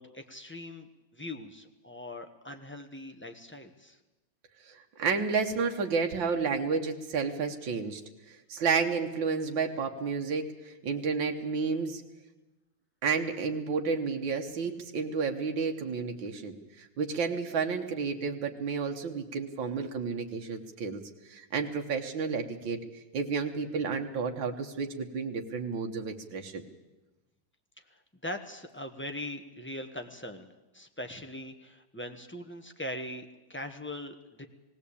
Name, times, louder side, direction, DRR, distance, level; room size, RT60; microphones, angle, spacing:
voice 1, 0.0-4.0 28.2-30.5 30.7-34.4, left 1 dB, 10° left, 5 dB, 0.9 m, -41 dB
voice 2, 4.7-8.0 8.5-12.0 13.0-21.0 21.3-22.8 23.1-26.6, right 5 dB, 90° right, 4 dB, 2.0 m, -31 dB
19.0 x 16.5 x 8.5 m, 1.1 s
omnidirectional pair, 2.0 m